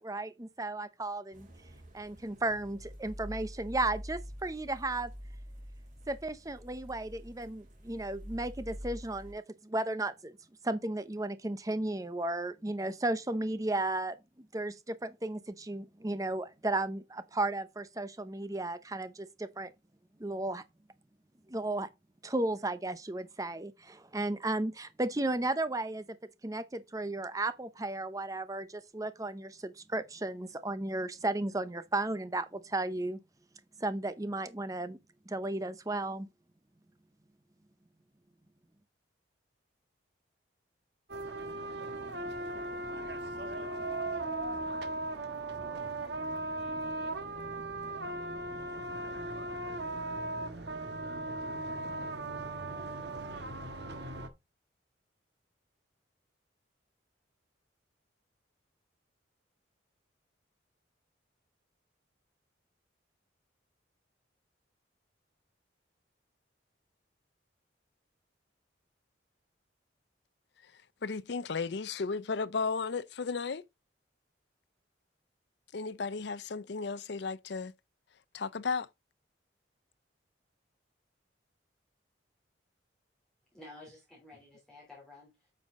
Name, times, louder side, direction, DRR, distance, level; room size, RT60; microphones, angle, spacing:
voice 1, 0.0-1.5 1.9-5.1 6.1-10.4 10.6-14.1 14.5-19.7 20.2-20.6 21.5-21.9 22.2-26.1 26.4-33.2 33.8-35.0 35.3-36.3, right 2 dB, 20° right, 0.7 m, -34 dB
sound 1, 1.3-9.3, equal, 40° right, 2.8 m, -46 dB
sound 2, 41.1-54.3, right 2 dB, 60° right, 1.4 m, -37 dB
voice 2, 71.0-73.6 75.7-77.7 78.3-78.9, left 4 dB, 60° left, 0.5 m, -34 dB
voice 3, 83.5-85.5, left 2 dB, 5° left, 2.9 m, -52 dB
9.0 x 5.5 x 3.7 m
head